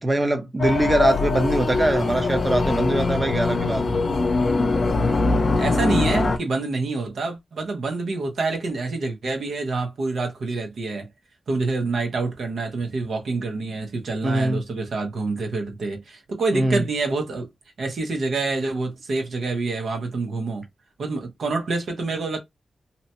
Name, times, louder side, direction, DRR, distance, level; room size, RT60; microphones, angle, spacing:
voice 1, 0.0-3.9 14.2-14.6 16.5-16.8, right 1 dB, 30° right, 0.7 m, -22 dB
sound 1, 0.6-6.4, left 3 dB, 50° left, 0.5 m, -22 dB
voice 2, 5.6-11.1 11.5-17.5 17.8-20.7 21.0-22.4, right 3 dB, 75° right, 0.8 m, -27 dB
2.8 x 2.2 x 2.7 m
cardioid pair, 75°, 0 cm